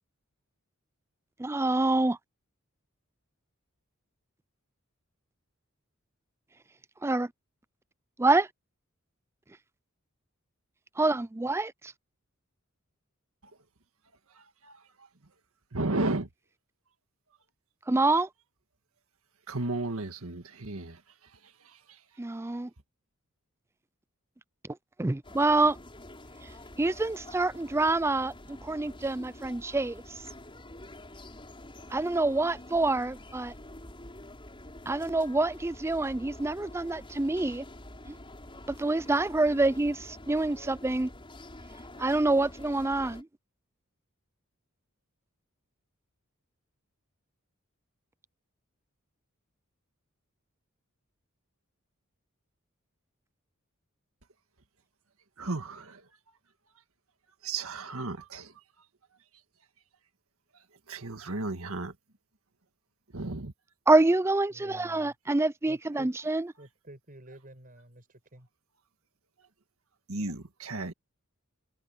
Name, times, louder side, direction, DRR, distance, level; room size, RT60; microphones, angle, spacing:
voice 1, 1.4-2.2 7.0-7.3 8.2-8.5 11.0-11.9 17.9-18.3 22.2-22.7 25.0-25.8 26.8-30.2 31.9-33.5 34.9-37.6 38.1-38.2 38.7-41.1 42.0-43.3 63.9-66.5, right 2 dB, 10° right, 0.4 m, -26 dB
voice 2, 14.3-15.1 15.7-16.3 19.5-22.0 55.4-56.1 57.4-58.6 60.5-62.0 63.1-63.5 70.1-70.9, right 2 dB, 80° right, 1.8 m, -34 dB
sound 1, 25.2-43.2, left 1 dB, 25° left, 5.8 m, -47 dB
voice 3, 64.5-65.1 65.7-66.1 66.6-68.5, right 1 dB, 40° right, 6.1 m, -50 dB
head